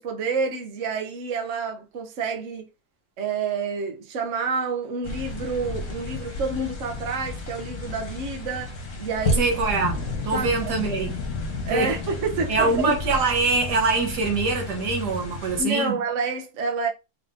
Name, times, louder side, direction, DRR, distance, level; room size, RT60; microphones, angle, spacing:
voice 1, 0.0-2.7 3.2-9.5 10.3-10.7 11.6-13.0 15.6-16.9, right 4 dB, 55° right, 1.1 m, -28 dB
sound 1, 5.0-15.6, left 2 dB, 55° left, 1.5 m, -32 dB
voice 2, 9.4-11.2 11.7-11.9 12.5-16.0, right 3 dB, 85° right, 1.7 m, -24 dB
4.3 x 3.6 x 2.6 m
omnidirectional pair, 1.7 m